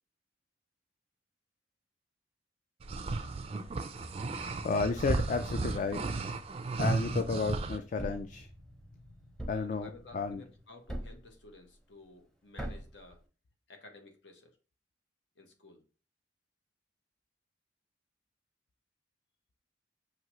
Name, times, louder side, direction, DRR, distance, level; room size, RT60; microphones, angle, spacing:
sound 1, 2.8-7.8, right 3 dB, 35° right, 0.3 m, -34 dB
sound 2, 3.9-10.6, equal, 65° left, 1.3 m, -53 dB
voice 1, 4.6-6.0 6.8-8.5 9.5-10.4, left 4 dB, 45° left, 8 dB, 0.3 m, -32 dB
Thump thud, 8.0-8.4 9.4-9.8 10.9-11.3 12.6-13.0, right 1 dB, 5° left, 0.6 m, -39 dB
voice 2, 9.5-13.2 13.7-14.6 15.4-15.8, left 2 dB, 90° left, 4 dB, 1.0 m, -54 dB
5.8 x 2.8 x 3.0 m, 0.35 s
head